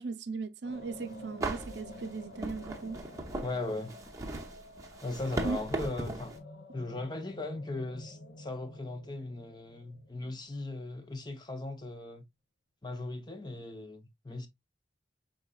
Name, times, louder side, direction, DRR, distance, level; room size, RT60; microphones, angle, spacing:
voice 1, 0.0-3.0 5.4-5.6, right 4 dB, 65° right, 0.5 m, -37 dB
sound 1, 0.6-10.8, left 1 dB, 60° left, 0.8 m, -50 dB
sound 2, 0.8-0.9 1.4-6.4, right 2 dB, 15° right, 0.8 m, -38 dB
voice 2, 3.4-3.9 5.0-6.3 6.7-12.2 12.8-14.5, left 2 dB, 25° left, 0.7 m, -38 dB
5.4 x 3.7 x 2.3 m
head